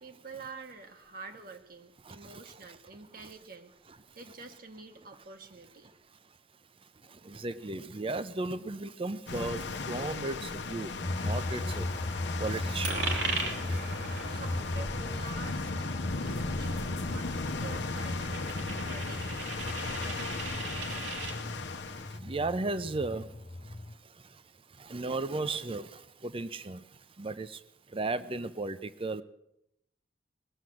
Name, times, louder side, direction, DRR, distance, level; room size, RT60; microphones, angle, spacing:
voice 1, 0.0-3.8 4.1-5.9 14.3-18.4 18.8-19.2, right 3 dB, 55° right, 5 dB, 1.2 m, -47 dB
voice 2, 2.0-2.5 3.2-3.3 4.1-4.2 7.0-14.0 20.2-20.5 21.4-24.4 24.7-27.6 27.9-29.2, right 2 dB, 30° right, 14 dB, 0.6 m, -37 dB
sound 1, 9.3-22.2, left 3 dB, 80° left, 0.9 m, -37 dB
sound 2, 11.0-23.9, left 1 dB, 35° left, 0.8 m, -37 dB
Coin (dropping), 12.8-21.4, right 3 dB, 85° right, 2.6 m, -39 dB
20.0 x 7.3 x 7.7 m, 0.80 s
head